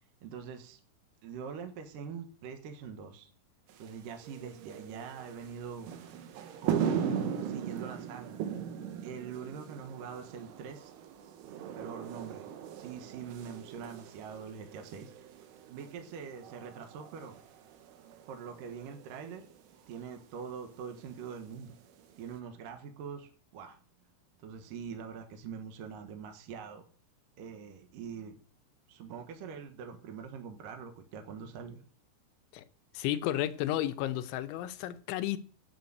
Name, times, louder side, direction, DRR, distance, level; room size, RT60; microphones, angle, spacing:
voice 1, 0.2-0.8 1.2-3.3 3.8-5.9 6.6-8.4 9.0-10.9 11.8-12.5 12.7-15.2 15.7-17.4 18.3-19.5 19.9-21.7 22.2-23.8 24.4-26.8 27.4-28.3 28.9-31.8, right 6 dB, 65° right, 2.2 m, -44 dB
sound 1, 3.7-22.3, right 8 dB, 85° right, 3.7 m, -39 dB
voice 2, 32.9-35.4, left 13 dB, 80° left, 3.0 m, -32 dB
9.5 x 6.8 x 8.0 m
omnidirectional pair, 5.6 m